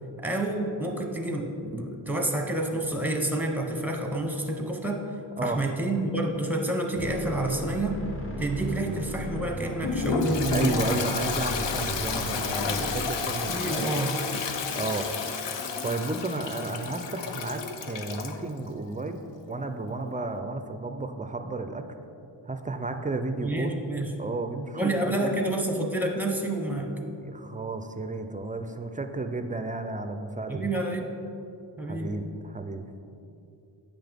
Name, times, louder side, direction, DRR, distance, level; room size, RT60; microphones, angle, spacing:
voice 1, 0.2-5.0 5.4-8.0 8.4-11.0 13.5-14.2 23.4-24.1 24.7-26.9 30.5-31.0 31.8-32.1, right 1 dB, 5° right, 2 dB, 0.8 m, -29 dB
sound 1, 6.9-13.1, equal, 30° left, 0.9 m, -37 dB
Toilet flush, 9.8-18.4, left 5 dB, 75° left, 0.7 m, -31 dB
voice 2, 10.5-14.1 14.7-15.1 15.4-15.5 15.8-21.9 22.5-23.7 24.2-25.4 27.2-30.7 31.9-32.8, right 2 dB, 20° right, 7 dB, 0.3 m, -32 dB
8.7 x 5.9 x 3.5 m, 2.7 s
wide cardioid pair, 100°, 44 cm